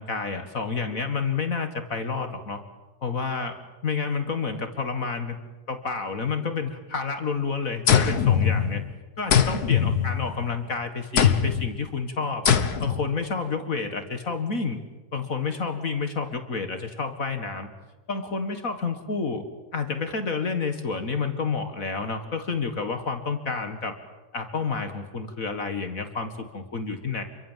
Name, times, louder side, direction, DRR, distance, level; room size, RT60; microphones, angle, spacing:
voice 1, 0.0-2.6 3.0-3.6 3.8-5.4 5.7-8.8 9.2-12.5 12.8-14.8 15.1-17.7 18.1-19.4 19.7-23.9 24.3-27.2, left 4 dB, 55° left, 7 dB, 2.1 m, -29 dB
sound 1, 7.9-8.9 9.3-10.6 11.2-11.7 12.5-13.1, left 8 dB, 70° left, 1.9 m, -21 dB
29.5 x 24.0 x 7.4 m, 1.2 s
omnidirectional pair, 1.7 m